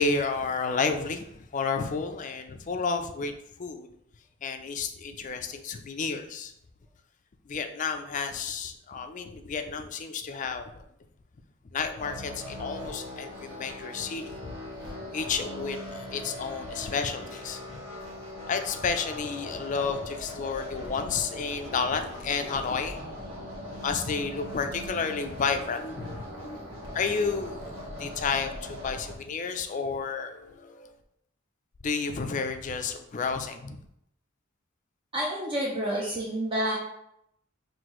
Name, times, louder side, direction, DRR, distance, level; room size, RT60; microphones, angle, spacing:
voice 1, 0.0-3.3 3.6-3.9 4.4-6.5 7.5-10.8 11.7-14.5 15.1-17.8 18.5-23.1 23.8-26.6 26.9-30.9 31.8-33.8, left 5 dB, 40° left, 7 dB, 0.4 m, -31 dB
sound 1, 12.0-29.2, left 1 dB, 75° right, 1.4 m, -40 dB
voice 2, 35.1-36.8, equal, 25° right, -4 dB, 0.6 m, -29 dB
5.8 x 2.7 x 3.0 m, 0.77 s
head